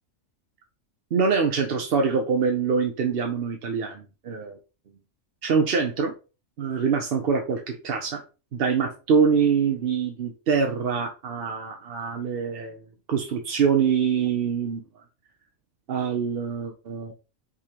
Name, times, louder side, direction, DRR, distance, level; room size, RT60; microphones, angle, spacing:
voice 1, 1.1-4.6 5.4-6.1 6.6-8.2 8.5-12.8 13.1-14.8 15.9-17.1, right 6 dB, 55° right, 3 dB, 0.7 m, -24 dB
4.8 x 3.6 x 2.9 m, 0.32 s
omnidirectional pair, 1.5 m